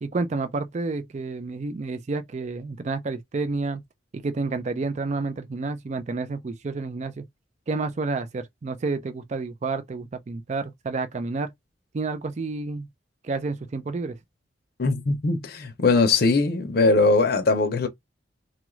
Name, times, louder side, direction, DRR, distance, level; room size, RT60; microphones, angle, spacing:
voice 1, 0.0-3.8 4.1-7.3 7.7-11.5 11.9-12.9 13.2-14.2, right 3 dB, 40° right, 0.4 m, -30 dB
voice 2, 14.8-17.9, left 3 dB, 55° left, 0.6 m, -21 dB
2.9 x 2.4 x 3.1 m
head